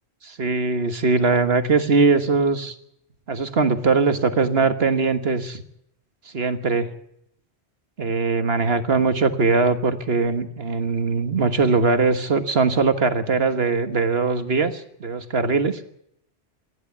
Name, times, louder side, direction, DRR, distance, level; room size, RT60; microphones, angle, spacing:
voice 1, 0.2-2.7 3.3-5.6 6.3-6.9 8.0-15.8, right 4 dB, 60° right, 9 dB, 1.7 m, -21 dB
27.0 x 11.5 x 8.4 m, 0.75 s
omnidirectional pair, 1.2 m